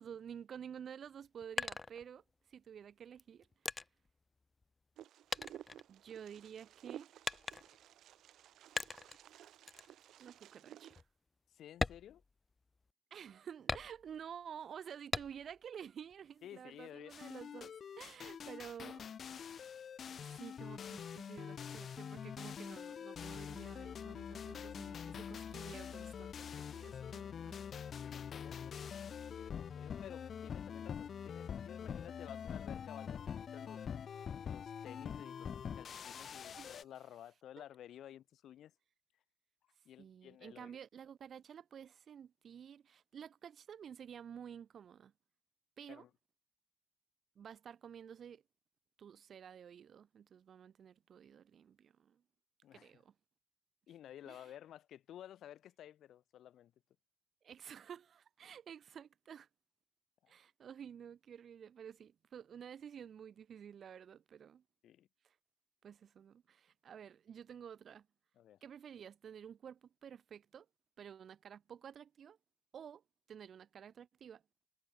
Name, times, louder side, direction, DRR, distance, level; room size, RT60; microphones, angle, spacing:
voice 1, 0.0-2.2 2.5-3.5 5.9-7.2 10.2-11.0 13.1-19.1 19.6-19.7 20.2-27.6 36.5-36.8 37.6-37.7 40.0-45.1 45.8-46.0 47.4-48.4 49.0-52.2 52.7-53.1 54.3-54.5 57.4-59.5 60.3-64.6 65.2-65.3 65.8-68.1 68.6-70.7 71.0-72.4 72.7-73.0 73.3-74.4, right 8 dB, 55° right, 1.1 m, -51 dB
sound 1, 1.0-2.5 3.2-5.0 5.3-6.5 7.2-7.9 8.8-9.2 9.7-9.9 10.4-10.5 10.9-11.1 11.7-12.9 13.7-14.3 15.1-15.7 16.1-16.9, left 3 dB, 25° left, 0.4 m, -41 dB
Wind, 5.0-11.0, right 12 dB, 75° right, 0.8 m, -55 dB
voice 2, 11.5-12.2 16.4-17.1 26.8-27.5 28.0-33.8 34.5-38.7 39.8-40.8 45.9-46.1 52.6-53.0 53.9-56.7 60.2-60.3 64.8-65.1 68.4-68.6, left 11 dB, 75° left, 2.7 m, -54 dB
sound 2, 17.1-36.8, left 7 dB, 50° left, 1.1 m, -45 dB
cardioid pair, 120°, 0 cm